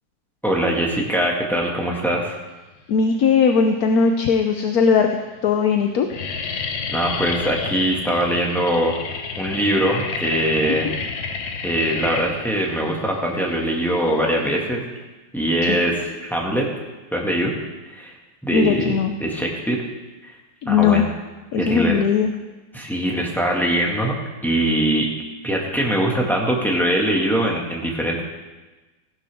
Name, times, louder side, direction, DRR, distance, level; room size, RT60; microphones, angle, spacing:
voice 1, 0.4-2.4 6.9-9.0 9.4-10.9 11.6-14.9 15.3-16.7 17.1-17.6 17.9-18.1 18.4-19.9 20.2-20.4 20.7-21.1 21.5-22.0 22.7-25.1 25.4-28.2, right 1 dB, ahead, -2 dB, 1.7 m, -22 dB
voice 2, 2.9-5.1 5.4-6.1 10.8-10.9 15.6-15.8 18.5-19.1 20.6-21.1 21.5-22.3, left 6 dB, 65° left, 5 dB, 1.0 m, -18 dB
sound 1, 3.5-4.1 4.7-4.8 5.1-5.5 5.7-14.7, left 5 dB, 85° left, 1.7 m, -30 dB
16.0 x 11.5 x 3.6 m, 1.2 s
omnidirectional pair, 2.0 m